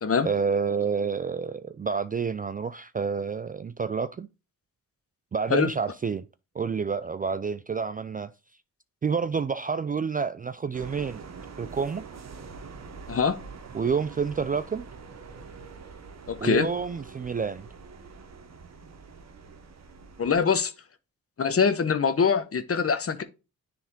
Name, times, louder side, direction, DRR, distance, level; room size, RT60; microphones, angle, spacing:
voice 1, 0.2-4.3 5.3-6.2 6.5-8.3 9.0-11.2 11.6-12.1 13.7-14.8 16.4-17.7, right 5 dB, 25° right, 0.4 m, -29 dB
sound 1, 10.7-20.4, right 5 dB, 50° right, 1.0 m, -45 dB
voice 2, 16.3-16.7 20.2-20.7 21.4-23.2, left 6 dB, 40° left, 1.0 m, -23 dB
9.8 x 3.4 x 3.6 m
supercardioid pair, 60°, 35 cm